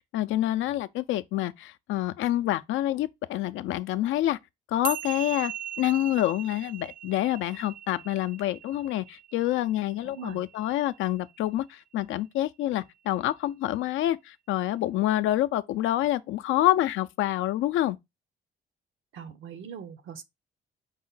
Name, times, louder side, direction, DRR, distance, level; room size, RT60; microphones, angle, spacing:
voice 1, 0.1-4.4 4.7-18.0, left 14 dB, 80° left, 0.4 m, -27 dB
sound 1, 4.8-11.4, right 10 dB, 45° right, 0.4 m, -39 dB
voice 2, 10.0-10.4 19.1-20.2, right 7 dB, 75° right, 0.7 m, -41 dB
5.5 x 2.1 x 3.8 m
cardioid pair, 90°, 20 cm